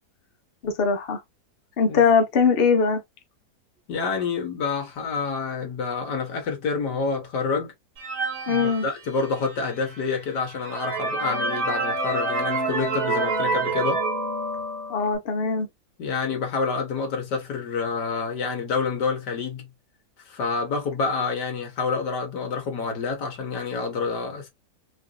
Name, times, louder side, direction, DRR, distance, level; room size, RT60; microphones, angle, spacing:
voice 1, 0.6-1.2 1.8-3.0 8.5-8.9 14.9-15.7, left 5 dB, 45° left, 0.9 m, -21 dB
voice 2, 3.9-7.7 8.5-14.0 16.0-19.7 20.3-24.5, left 4 dB, 80° left, 1.9 m, -28 dB
sound 1, 8.0-9.6 10.2-10.3 10.6-15.2, right 3 dB, 35° right, 1.6 m, -27 dB
4.7 x 2.7 x 2.5 m
omnidirectional pair, 1.8 m